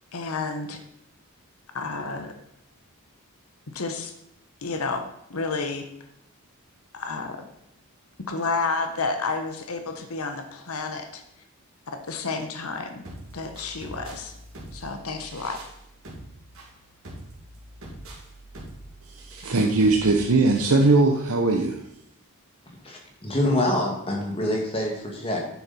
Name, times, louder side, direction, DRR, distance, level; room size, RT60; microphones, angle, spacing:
voice 1, 0.1-0.8 1.7-2.4 3.7-4.1 4.6-5.0 5.3-5.8 6.9-7.4 8.3-11.2 12.1-13.0 13.3-14.3 14.7-15.6, left 4 dB, 75° left, 6 dB, 1.0 m, -30 dB
sound 1, 13.0-21.0, right 1 dB, 65° right, 2.6 m, -43 dB
voice 2, 19.1-21.8, right 3 dB, 80° right, 1 dB, 0.9 m, -20 dB
voice 3, 22.8-25.4, left 1 dB, 25° left, 0 dB, 2.1 m, -26 dB
10.0 x 7.1 x 4.3 m, 0.78 s
head